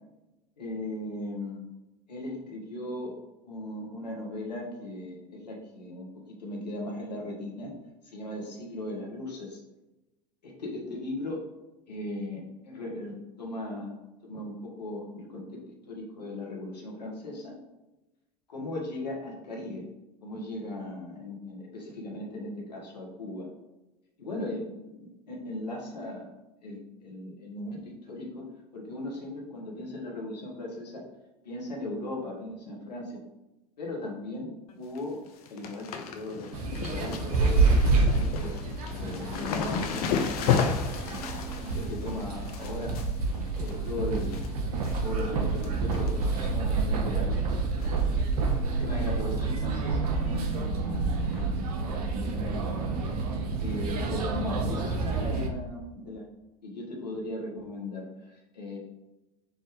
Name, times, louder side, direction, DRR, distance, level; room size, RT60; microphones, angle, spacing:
voice 1, 0.6-1.7 2.1-3.1 3.4-7.7 8.0-9.6 10.4-11.4 11.9-14.0 14.2-17.6 18.5-19.9 20.2-23.5 24.2-26.3 26.6-28.5 28.7-31.0 31.4-33.2 33.8-34.5 34.8-35.2 35.5-38.5 38.9-43.0 43.5-44.4 45.0-47.3 48.8-51.4 52.1-52.8 53.6-56.3 56.6-58.8, left 1 dB, 75° left, -1 dB, 1.0 m, -37 dB
sound 1, 34.7-35.0 35.3-44.5 44.8-45.3 45.6-46.4 46.7-46.8 47.8-48.1 48.3-48.4 48.8-48.9 50.5-50.6 51.3-51.4, left 6 dB, 60° left, 0.5 m, -33 dB
sound 2, 36.5-55.5, right 3 dB, 65° right, 0.6 m, -28 dB
3.4 x 2.6 x 3.6 m, 1.0 s
figure-of-eight pair, 75°, 21 cm